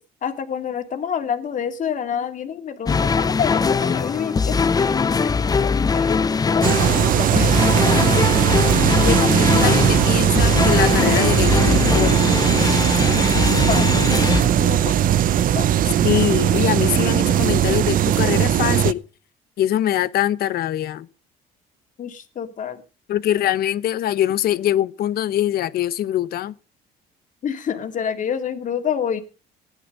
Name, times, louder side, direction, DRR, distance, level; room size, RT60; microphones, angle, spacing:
voice 1, 0.2-8.0 13.4-14.1 14.4-15.7 22.0-22.8 27.4-29.2, left 8 dB, 50° left, 2.4 m, -28 dB
sound 1, 2.9-14.4, left 5 dB, 20° left, 0.6 m, -21 dB
sound 2, 6.6-18.9, right 10 dB, 55° right, 0.7 m, -18 dB
voice 2, 9.0-12.4 16.0-19.0 19.6-21.1 23.1-26.5, left 12 dB, 65° left, 1.0 m, -23 dB
16.5 x 11.0 x 5.3 m
cardioid pair, 110°, 17 cm